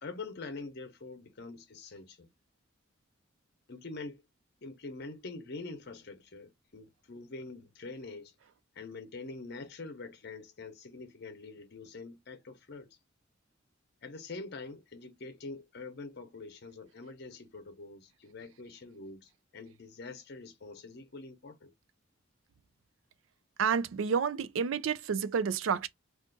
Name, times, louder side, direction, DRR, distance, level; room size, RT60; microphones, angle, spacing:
voice 1, 0.0-2.3 3.7-4.2 4.6-8.3 8.7-13.0 14.0-21.7, left 3 dB, 55° left, 0.7 m, -45 dB
voice 2, 23.6-25.9, right 6 dB, 80° right, 0.4 m, -30 dB
2.4 x 2.4 x 3.7 m
head